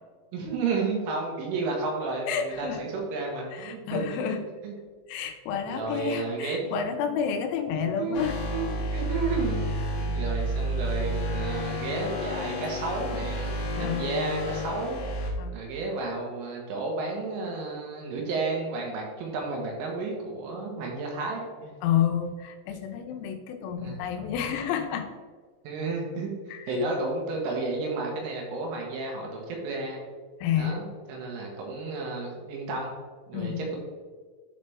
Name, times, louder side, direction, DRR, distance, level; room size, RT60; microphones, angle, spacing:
voice 1, 0.3-4.7 5.7-6.8 7.1-7.3 7.7-9.6 10.1-15.0 15.5-21.7 23.8-24.0 25.7-26.3 26.7-30.0 30.6-32.9 33.3-33.8, right 3 dB, 75° right, 0 dB, 3.7 m, -32 dB
voice 2, 2.3-2.8 3.5-4.4 5.1-8.4 13.8-14.1 15.4-15.6 21.8-25.1 26.5-26.9 30.4-30.8 33.3-33.7, left 8 dB, 90° left, 6 dB, 3.5 m, -30 dB
sound 1, 8.1-15.3, equal, 55° left, 2.7 m, -31 dB
12.5 x 4.2 x 3.5 m, 1.5 s
omnidirectional pair, 5.9 m